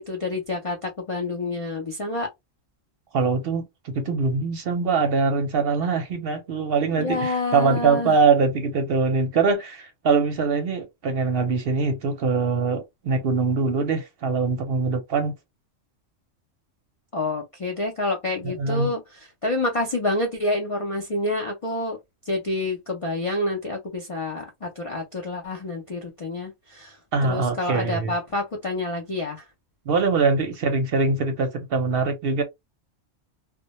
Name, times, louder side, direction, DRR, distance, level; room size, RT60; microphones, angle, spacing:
voice 1, 0.0-2.3 7.0-8.2 17.1-19.0 19.4-22.0 22.3-27.0 27.3-29.4, left 2 dB, 65° left, 0.3 m, -28 dB
voice 2, 3.1-15.3 18.4-18.9 27.1-28.2 29.9-32.4, right 4 dB, 60° right, 0.7 m, -23 dB
2.1 x 2.1 x 2.8 m
omnidirectional pair, 1.3 m